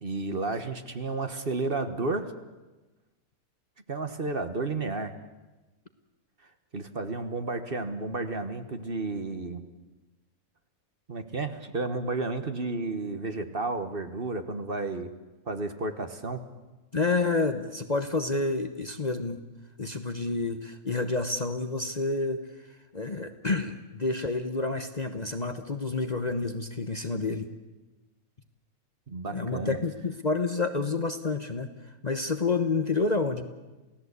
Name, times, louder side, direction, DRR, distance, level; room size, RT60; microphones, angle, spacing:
voice 1, 0.0-2.3 3.9-5.1 6.7-9.6 11.1-15.1 15.5-16.4 29.1-29.8, right 3 dB, 40° right, 8 dB, 1.5 m, -32 dB
voice 2, 16.9-19.4 19.8-22.4 22.9-27.5 29.3-31.7 32.0-33.4, left 3 dB, 30° left, 8 dB, 1.1 m, -29 dB
28.5 x 17.0 x 8.3 m, 1.1 s
omnidirectional pair, 1.5 m